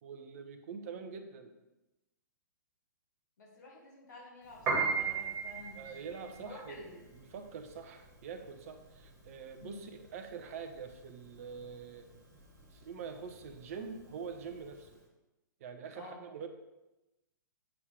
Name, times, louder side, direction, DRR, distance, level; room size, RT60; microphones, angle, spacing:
voice 1, 0.0-1.5 5.7-12.1 12.7-15.0 15.6-16.5, right 6 dB, 45° right, 7 dB, 1.1 m, -45 dB
voice 2, 3.4-6.9 9.6-9.8 16.0-16.3, left 3 dB, 60° left, -2 dB, 2.1 m, -50 dB
Piano, 4.5-14.9, right 5 dB, 20° right, 2.0 m, -37 dB
8.3 x 6.5 x 3.6 m, 0.99 s
figure-of-eight pair, 115°, 11 cm